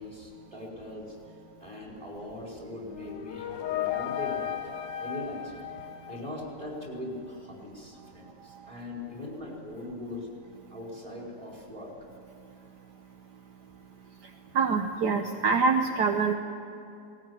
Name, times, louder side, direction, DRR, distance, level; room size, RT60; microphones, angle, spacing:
voice 1, 0.0-4.5 5.0-5.6 6.1-10.3 10.7-12.1 12.6-12.7, left 1 dB, 15° right, -2 dB, 4.7 m, -41 dB
sound 1, 2.9-6.8, left 11 dB, 75° left, 1.5 m, -35 dB
voice 2, 14.5-16.3, right 5 dB, 65° right, 4 dB, 1.5 m, -25 dB
19.0 x 18.0 x 9.6 m, 2.6 s
omnidirectional pair, 2.0 m